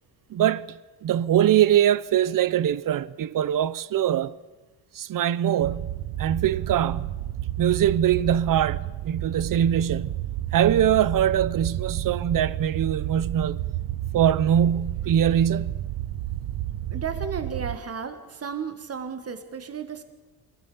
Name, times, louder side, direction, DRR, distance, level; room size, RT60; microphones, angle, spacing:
voice 1, 0.3-0.8 1.0-4.3 4.9-5.9 6.2-7.1 7.6-10.2 10.5-13.6 14.1-15.8, right 10 dB, 50° right, 0.7 m, -22 dB
sound 1, 5.6-17.8, right 13 dB, 70° right, 0.9 m, -31 dB
voice 2, 16.9-20.0, right 6 dB, 35° right, 1.9 m, -33 dB
24.0 x 16.5 x 7.0 m
cardioid pair, 125°, 43 cm